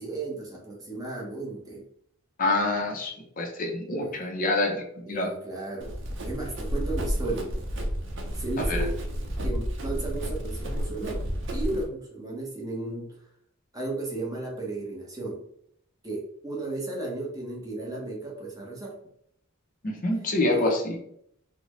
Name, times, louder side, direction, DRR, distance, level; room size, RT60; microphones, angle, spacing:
voice 1, 0.0-1.8 4.0-4.3 5.0-7.6 8.3-8.9 9.4-11.2 11.5-13.3 13.7-15.4 16.0-19.0 20.5-20.7, right 2 dB, 15° right, -3 dB, 0.8 m, -34 dB
voice 2, 2.4-4.8 5.1-5.3 8.7-8.8 19.8-21.0, left 2 dB, 40° left, 1 dB, 0.6 m, -26 dB
Run, 5.8-11.8, equal, 60° right, 0.7 m, -31 dB
3.9 x 2.1 x 3.0 m, 0.71 s
head